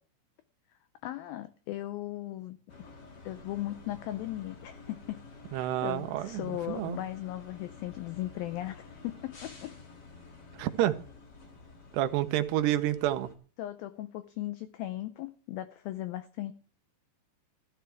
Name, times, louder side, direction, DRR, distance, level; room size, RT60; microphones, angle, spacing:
voice 1, 1.0-3.0 3.3-5.2 5.5-9.7 13.6-16.5, left 14 dB, 80° left, 11 dB, 2.1 m, -38 dB
sound 1, 2.7-13.3, left 4 dB, 40° left, 1.6 m, -50 dB
voice 2, 5.5-7.0 10.6-11.0 11.9-13.3, right 13 dB, 80° right, 10 dB, 2.9 m, -29 dB
14.5 x 13.0 x 3.4 m, 0.41 s
omnidirectional pair, 4.8 m